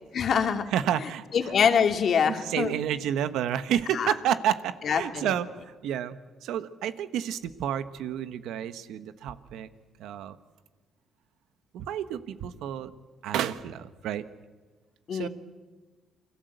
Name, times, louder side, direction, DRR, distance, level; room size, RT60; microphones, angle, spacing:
voice 1, 0.1-0.6 1.3-2.7 3.9-4.1 4.8-5.3 15.1-15.3, left 7 dB, 60° left, 6 dB, 2.4 m, -24 dB
voice 2, 0.7-1.2 2.3-5.5 5.8-9.7 10.0-10.4 11.7-12.9 13.2-14.2 15.1-15.3, right 10 dB, 85° right, 12 dB, 1.3 m, -30 dB
28.5 x 22.5 x 8.1 m, 1.3 s
cardioid pair, 90°, 0 cm